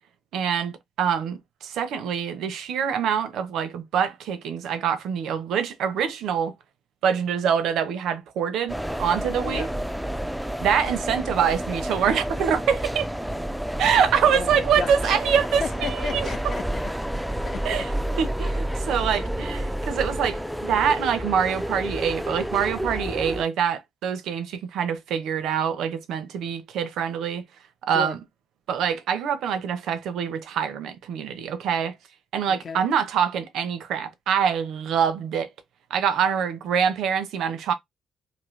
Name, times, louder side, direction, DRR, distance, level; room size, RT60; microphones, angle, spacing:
voice 1, 0.3-6.5 7.0-9.7 10.6-13.1 13.8-16.3 17.6-17.9 18.2-27.4 27.8-28.2 28.7-31.9 32.3-35.5 35.9-37.7, right 7 dB, 80° right, 0.6 m, -25 dB
sound 1, 8.7-23.4, right 1 dB, ahead, 0.3 m, -30 dB
voice 2, 14.3-15.2 15.6-17.8 27.9-28.1 32.5-32.8, left 5 dB, 50° left, 0.7 m, -34 dB
2.7 x 2.6 x 3.1 m
cardioid pair, 90°, 0 cm